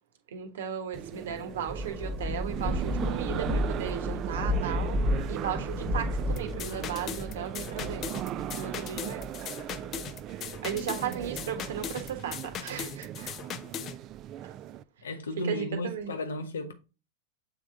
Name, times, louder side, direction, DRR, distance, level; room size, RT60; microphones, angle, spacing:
voice 1, 0.3-5.0 5.3-8.0 8.5-9.2 9.6-9.7 10.6-13.3 14.4-14.5 15.4-16.1, right 8 dB, 75° right, 1.3 m, -36 dB
sound 1, 0.9-14.8, right 12 dB, 40° right, 0.3 m, -38 dB
Thunder / Rain, 1.3-10.2 10.8-12.1, left 1 dB, 25° right, 1.2 m, -33 dB
sound 2, 6.4-14.0, left 9 dB, 35° left, 0.5 m, -39 dB
voice 2, 15.0-16.7, left 2 dB, 90° left, 1.1 m, -34 dB
7.2 x 3.5 x 3.7 m
hypercardioid pair, 110°, 0 cm